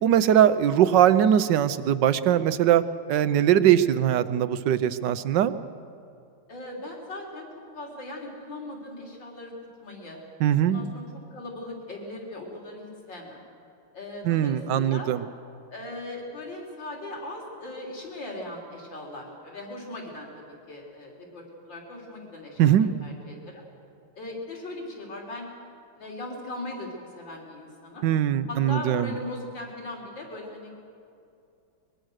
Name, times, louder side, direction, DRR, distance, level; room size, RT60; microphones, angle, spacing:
voice 1, 0.0-2.8 3.1-5.5 10.4-10.8 14.2-15.2 22.6-22.9 28.0-29.1, right 10 dB, 70° right, 14 dB, 1.3 m, -21 dB
voice 2, 6.5-7.5 7.7-9.5 9.8-10.2 10.6-11.0 11.3-13.4 13.9-15.1 15.7-23.6 24.2-25.5 26.0-28.1 28.5-30.7, left 1 dB, 65° left, -1 dB, 4.6 m, -39 dB
23.5 x 22.0 x 6.5 m, 2.5 s
omnidirectional pair, 2.1 m